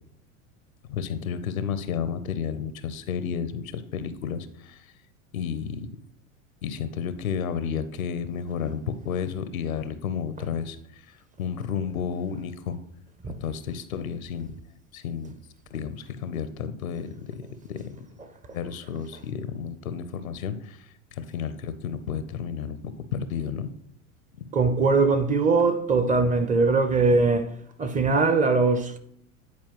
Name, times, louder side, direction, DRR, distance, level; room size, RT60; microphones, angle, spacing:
voice 1, 0.9-4.8 5.3-5.9 6.6-10.8 11.4-12.8 13.4-14.5 14.9-15.3 15.7-17.4 17.7-17.8 18.5-20.8 21.2-22.8 23.1-23.7, left 7 dB, 85° left, 0.7 m, -31 dB
voice 2, 24.5-27.5 27.8-29.0, right 4 dB, 20° right, 0.5 m, -21 dB
9.5 x 4.3 x 3.0 m
hypercardioid pair, 85°, 41 cm